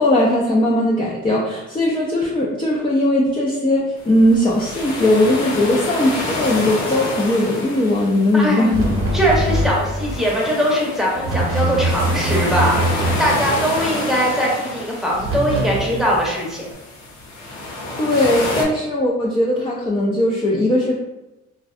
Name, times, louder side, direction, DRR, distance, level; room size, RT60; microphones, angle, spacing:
voice 1, 0.0-9.0 13.4-13.5 18.0-20.9, left 1 dB, 15° left, -4 dB, 0.4 m, -18 dB
sound 1, 4.0-18.6, left 2 dB, 65° left, 0.6 m, -29 dB
voice 2, 8.3-8.7 9.1-16.7, equal, ahead, -4 dB, 0.7 m, -21 dB
sound 2, 8.7-10.3 11.1-13.8 15.1-16.3, right 1 dB, 45° right, 0.8 m, -23 dB
2.5 x 2.1 x 2.4 m, 0.97 s
cardioid pair, 90°, 30 cm